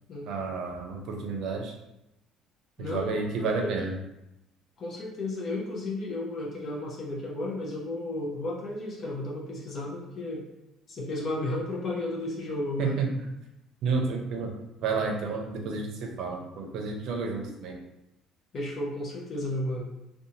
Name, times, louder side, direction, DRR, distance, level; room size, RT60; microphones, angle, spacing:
voice 1, 0.3-1.7 2.8-4.0 12.8-13.1 13.8-14.5 14.8-17.8, right 4 dB, 70° right, 2 dB, 0.5 m, -31 dB
voice 2, 2.8-3.8 4.8-10.5 10.9-13.1 18.5-19.9, left 2 dB, 45° left, -3 dB, 0.6 m, -33 dB
2.6 x 2.3 x 2.8 m, 0.88 s
cardioid pair, 105°, 0 cm